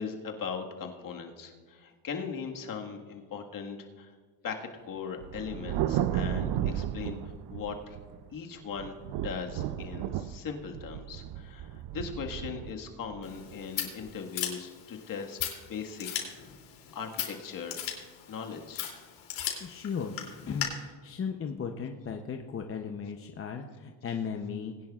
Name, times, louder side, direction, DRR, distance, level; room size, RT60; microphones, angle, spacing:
voice 1, 0.0-4.1 4.4-8.0 8.3-15.4 15.7-16.1 16.4-16.5 16.9-17.8 18.3-18.9, left 6 dB, 45° left, 2 dB, 1.8 m, -39 dB
Thunder, 5.2-8.3 8.8-14.1, right 11 dB, 55° right, 0.6 m, -34 dB
Scissors, 13.2-20.6, left 10 dB, 65° left, 3.1 m, -38 dB
voice 2, 19.6-20.2 20.5-24.7, left 6 dB, 25° left, 4 dB, 0.8 m, -36 dB
20.5 x 10.5 x 2.4 m, 1.5 s
supercardioid pair, 105°, 48 cm